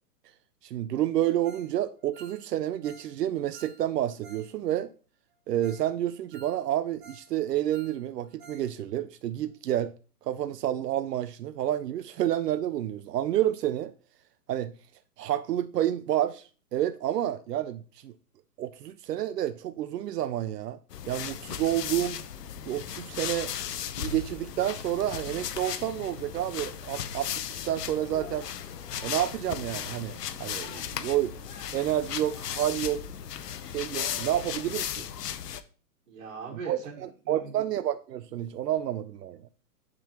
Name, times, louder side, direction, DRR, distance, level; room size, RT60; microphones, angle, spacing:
voice 1, 0.6-4.9 5.5-9.9 10.2-13.9 14.5-14.7 15.2-18.1 18.6-20.8 21.1-22.2 22.7-23.5 24.0-28.5 29.0-31.4 31.7-33.1 33.7-35.1 36.7-39.5, right 12 dB, 85° right, 0.6 m, -29 dB
Ringtone, 1.4-1.7 2.0-4.5 4.8-4.9 5.3-5.4 5.6-5.9 6.2-7.3 7.6-8.7 8.9-9.0 9.5-9.6, right 3 dB, 15° right, 1.3 m, -52 dB
sound 1, 20.9-35.6, left 9 dB, 85° left, 0.7 m, -36 dB
sound 2, 27.7-32.7, left 4 dB, 35° left, 1.3 m, -52 dB
voice 2, 36.1-37.6, right 5 dB, 55° right, 1.5 m, -41 dB
10.5 x 3.8 x 2.9 m
hypercardioid pair, 170°, 47 cm